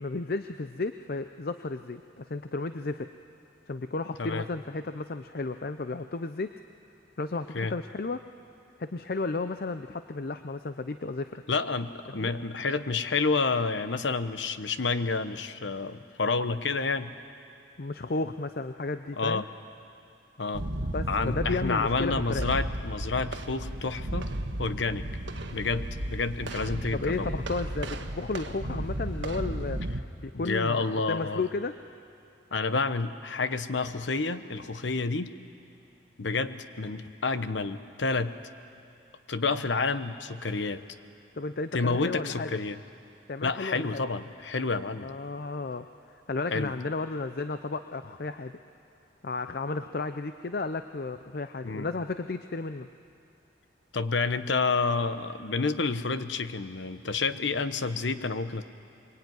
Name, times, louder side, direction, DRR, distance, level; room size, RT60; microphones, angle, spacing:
voice 1, 0.0-3.1 3.7-6.5 7.2-8.2 8.8-11.4 12.2-12.3 17.8-19.4 20.9-22.5 26.9-29.8 30.2-31.7 41.4-42.5 43.3-44.0 45.0-48.6 49.2-52.9, left 3 dB, 55° left, 9 dB, 0.6 m, -33 dB
voice 2, 11.5-17.1 19.2-19.5 20.4-20.6 21.1-24.3 24.6-25.1 25.5-27.3 30.3-31.4 32.5-35.3 36.2-38.4 39.3-40.8 41.7-42.8 43.4-45.1 46.5-46.7 51.6-51.9 53.9-58.6, left 4 dB, 80° left, 11 dB, 1.0 m, -29 dB
sound 1, 20.5-30.0, right 1 dB, 85° right, 1.4 m, -34 dB
24.5 x 22.5 x 9.4 m, 2.6 s
head